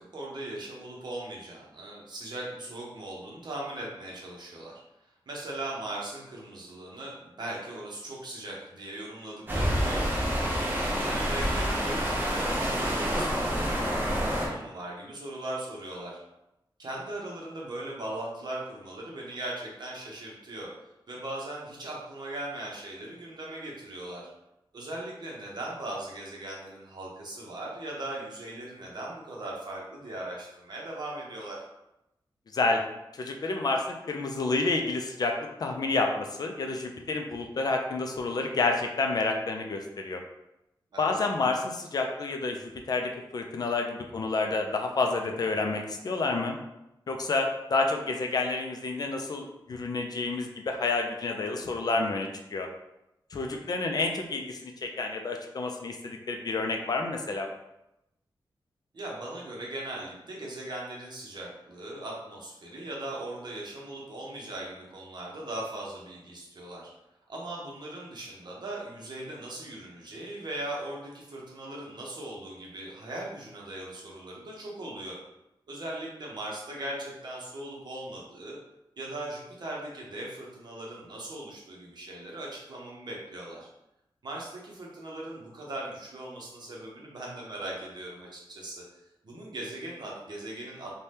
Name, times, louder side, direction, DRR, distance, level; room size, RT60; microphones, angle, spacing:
voice 1, 0.0-4.8 5.3-10.2 10.7-16.2 16.8-20.7 21.1-24.3 24.7-31.6 40.9-41.2 53.3-53.7 58.9-66.9 67.3-75.2 75.7-78.6 79.0-83.7 84.2-88.8 89.2-91.0, right 1 dB, 55° right, -3 dB, 0.8 m, -39 dB
sound 1, 9.5-14.5, equal, 25° right, 0.6 m, -28 dB
voice 2, 32.5-32.8 33.1-40.2 41.0-46.6 47.1-52.7 53.3-57.5, left 3 dB, 50° left, 3 dB, 0.3 m, -29 dB
2.7 x 2.2 x 3.3 m, 0.89 s
wide cardioid pair, 155°, 9 cm